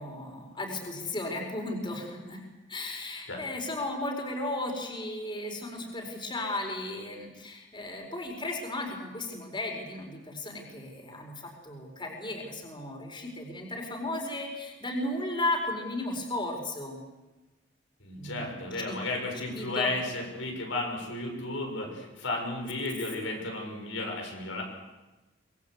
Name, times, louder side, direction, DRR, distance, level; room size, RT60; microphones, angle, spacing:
voice 1, 0.0-2.4 2.7-17.0 18.2-19.0 19.5-19.9, left 2 dB, 25° left, 2 dB, 4.5 m, -35 dB
voice 2, 18.0-24.6, left 2 dB, 90° left, 1 dB, 6.6 m, -33 dB
25.0 x 21.5 x 8.2 m, 1.1 s
head